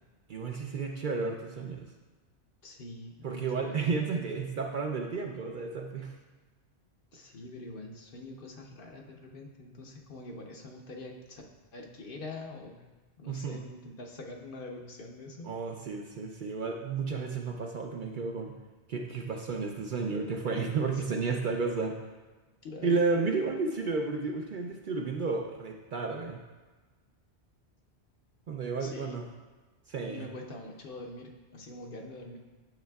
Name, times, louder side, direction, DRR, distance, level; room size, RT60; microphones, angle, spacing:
voice 1, 0.3-1.9 3.2-6.1 13.3-13.6 15.4-18.5 18.9-22.0 22.8-26.4 28.5-29.3 29.9-30.3, right 4 dB, 55° right, 2 dB, 0.6 m, -32 dB
voice 2, 2.6-3.9 7.1-11.4 11.7-12.8 13.2-15.5 20.9-21.4 22.6-23.0 28.8-29.2 30.0-32.4, left 2 dB, 55° left, 1 dB, 0.9 m, -44 dB
9.0 x 6.3 x 2.3 m, 1.3 s
omnidirectional pair, 1.1 m